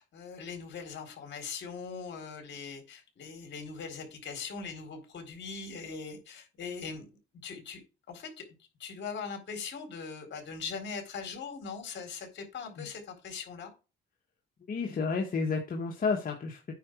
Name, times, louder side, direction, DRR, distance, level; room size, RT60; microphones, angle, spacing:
voice 1, 0.0-7.1 7.4-7.8 8.1-8.4 8.8-13.7, left 5 dB, 65° left, 4.1 m, -41 dB
voice 2, 14.7-16.7, left 4 dB, 45° left, 1.8 m, -31 dB
9.2 x 4.4 x 6.5 m
cardioid pair, 90°, 20 cm